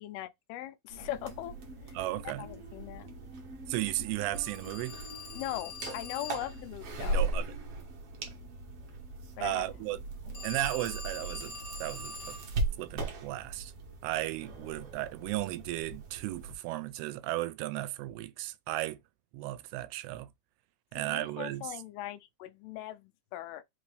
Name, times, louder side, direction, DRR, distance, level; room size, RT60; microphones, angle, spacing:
voice 1, 0.0-1.5 2.2-3.1 5.4-7.3 9.4-9.7 10.2-10.4 21.0-23.6, left 13 dB, 85° left, 2.4 m, -40 dB
sound 1, 0.9-16.5, right 2 dB, 70° right, 1.4 m, -39 dB
voice 2, 1.9-2.5 3.7-4.9 7.0-7.5 9.4-10.0 10.4-11.5 11.8-12.4 12.8-13.7 14.0-19.0 19.3-20.3 20.9-21.7, right 16 dB, 85° right, 2.5 m, -35 dB
Telephone, 4.3-6.7 10.3-12.5, left 2 dB, 50° left, 1.1 m, -44 dB
5.8 x 2.6 x 3.3 m
omnidirectional pair, 4.5 m